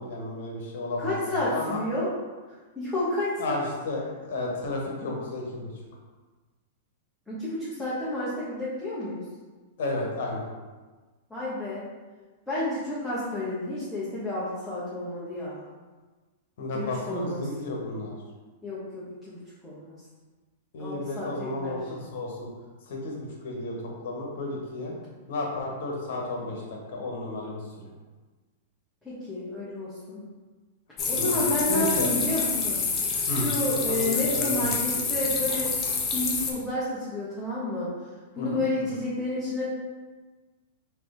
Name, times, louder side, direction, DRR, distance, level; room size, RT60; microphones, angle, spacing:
voice 1, 0.0-1.8 3.4-4.0 4.3-5.7 9.8-10.5 16.6-18.1 20.7-22.5 22.9-24.9 25.3-27.9 31.1-32.1 33.3-33.5 33.9-34.7 38.4-38.6, left 2 dB, 65° left, -1 dB, 1.1 m, -32 dB
voice 2, 1.0-2.1 2.7-3.6 7.3-9.2 11.3-11.8 12.5-15.6 16.7-17.5 18.6-20.0 20.8-21.8 29.0-30.2 31.1-32.8 33.3-35.7 36.1-37.9 38.3-39.7, left 1 dB, 5° left, -11 dB, 1.2 m, -30 dB
sound 1, 31.0-36.5, left 4 dB, 30° left, 0.7 m, -27 dB
3.9 x 2.9 x 3.5 m, 1.3 s
hypercardioid pair, 115°, 0 cm